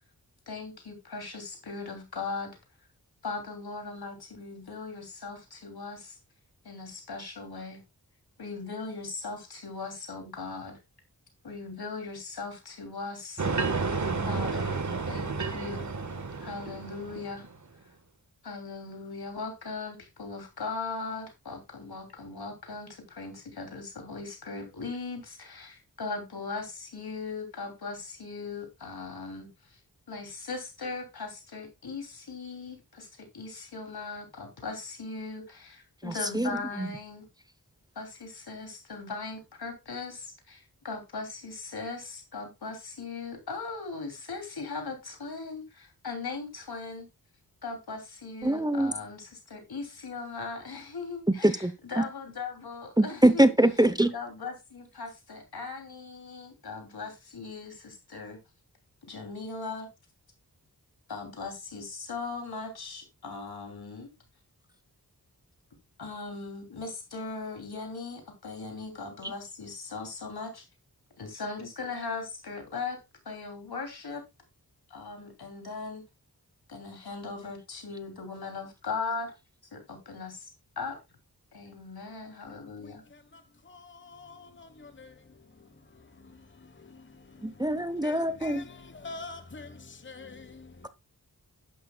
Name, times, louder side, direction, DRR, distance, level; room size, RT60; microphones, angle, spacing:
voice 1, 0.5-2.5 3.2-6.2 6.6-7.8 8.4-10.8 11.4-13.4 14.2-14.8 15.1-15.9 16.4-17.5 18.4-29.8 30.1-37.3 37.9-47.1 47.6-53.5 54.1-58.4 59.1-59.9 61.1-64.1 66.0-70.6 71.2-73.0 73.2-74.2 74.9-76.0 76.7-79.3 79.7-81.0 81.5-83.0, left 4 dB, 85° left, 3.1 m, -39 dB
sound 1, 13.4-17.5, right 4 dB, 50° right, 1.5 m, -31 dB
voice 2, 36.0-36.9 48.4-48.9 51.3-52.0 53.0-54.1 69.2-69.3 87.4-88.7, right 1 dB, 10° right, 0.8 m, -24 dB
voice 3, 82.8-90.9, left 3 dB, 30° left, 1.2 m, -47 dB
11.0 x 10.5 x 2.3 m
wide cardioid pair, 65°, 37 cm